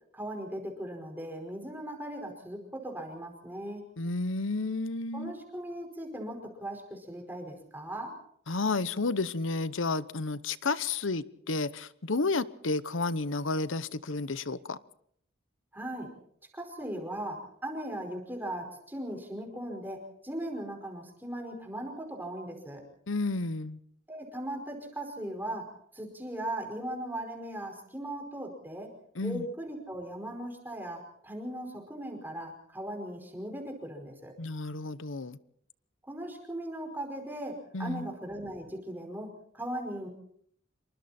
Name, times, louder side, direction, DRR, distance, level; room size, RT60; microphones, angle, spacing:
voice 1, 0.1-3.8 5.1-8.1 15.7-16.1 16.5-22.8 24.1-25.7 25.9-28.9 29.2-34.3 36.1-40.1, right 1 dB, 10° right, 5.0 m, -38 dB
voice 2, 4.0-5.3 8.5-14.8 23.1-23.8 29.2-29.5 34.4-35.4 37.7-38.1, left 3 dB, 80° left, 0.9 m, -31 dB
27.0 x 24.0 x 4.4 m
head